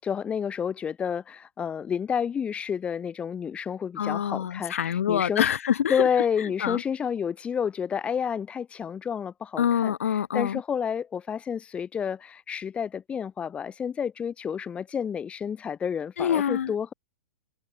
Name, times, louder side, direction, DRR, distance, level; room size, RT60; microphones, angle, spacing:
voice 1, 0.0-5.5 5.9-9.9 10.3-16.9, left 7 dB, 15° left, 6.9 m, -30 dB
voice 2, 4.0-6.1 6.4-6.8 9.6-10.6 16.2-16.7, left 9 dB, 80° left, 2.3 m, -26 dB
hypercardioid pair, 145°, 7 cm